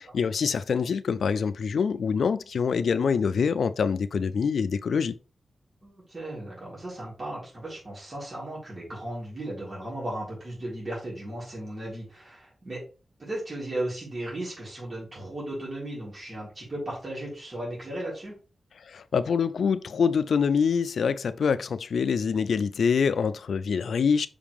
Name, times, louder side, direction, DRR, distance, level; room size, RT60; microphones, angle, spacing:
voice 1, 0.0-5.2 18.8-24.3, left 6 dB, 85° left, 0.4 m, -25 dB
voice 2, 5.8-12.8 13.2-18.3, right 1 dB, 40° right, 3.7 m, -36 dB
5.7 x 5.0 x 3.5 m
wide cardioid pair, 85°, 0 cm